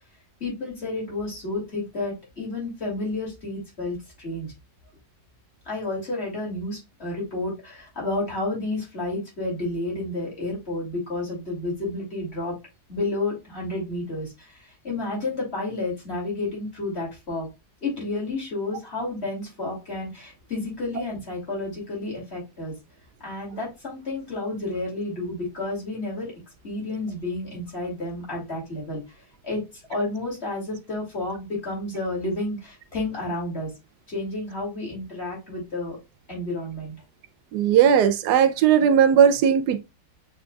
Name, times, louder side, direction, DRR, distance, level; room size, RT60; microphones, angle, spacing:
voice 1, 0.4-4.5 5.6-12.6 12.9-17.5 17.8-22.7 23.2-26.3 26.6-29.0 29.4-33.7 34.1-36.0 36.3-36.9, left 2 dB, 40° left, 2.8 m, -31 dB
voice 2, 37.5-39.8, right 8 dB, 80° right, 1.1 m, -17 dB
6.3 x 3.4 x 2.3 m
omnidirectional pair, 1.7 m